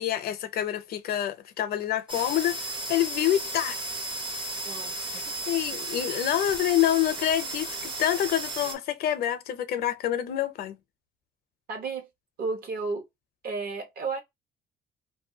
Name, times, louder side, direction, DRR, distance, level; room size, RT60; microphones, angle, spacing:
voice 1, 0.0-2.6 2.9-3.8 5.2-10.8, left 12 dB, 65° left, 0.6 m, -27 dB
sound 1, 2.1-8.7, right 2 dB, 30° right, 0.6 m, -34 dB
voice 2, 4.6-5.2 11.7-12.1 12.4-13.1 13.4-14.2, right 4 dB, 60° right, 1.1 m, -33 dB
2.6 x 2.2 x 2.7 m
cardioid pair, 110°, 17 cm